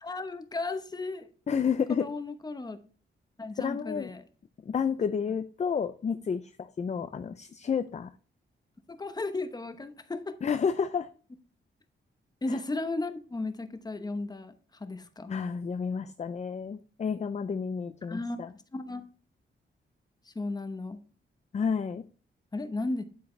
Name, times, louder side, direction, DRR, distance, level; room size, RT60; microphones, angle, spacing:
voice 1, 0.0-1.3 1.9-2.8 3.4-4.2 9.0-10.3 12.4-14.5 14.8-15.3 18.1-18.4 18.7-19.1 20.3-21.0 22.5-23.0, left 2 dB, 20° left, 9 dB, 0.9 m, -34 dB
voice 2, 1.5-2.1 3.6-4.1 4.7-8.1 10.4-11.1 12.5-12.6 15.3-18.5 21.5-22.0, left 6 dB, 35° left, 11 dB, 0.4 m, -30 dB
9.4 x 8.3 x 3.2 m, 0.38 s
wide cardioid pair, 140°, 20 cm